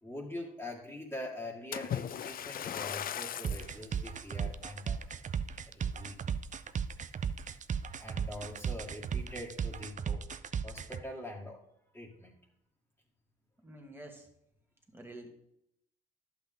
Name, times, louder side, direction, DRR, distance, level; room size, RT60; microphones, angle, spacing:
voice 1, 0.0-5.0 5.7-6.2 8.0-10.2 10.6-11.6 11.9-12.3, left 1 dB, 10° left, -5 dB, 2.2 m, -43 dB
Splash splatter, 1.7-3.8 4.4-4.6 5.2-5.3, left 10 dB, 45° left, 0.4 m, -38 dB
sound 1, 3.4-11.0, right 7 dB, 40° right, 0.5 m, -35 dB
voice 2, 13.6-14.3 14.9-15.3, right 1 dB, 10° right, 2 dB, 2.2 m, -48 dB
11.5 x 8.1 x 3.7 m, 0.79 s
cardioid pair, 90°, 20 cm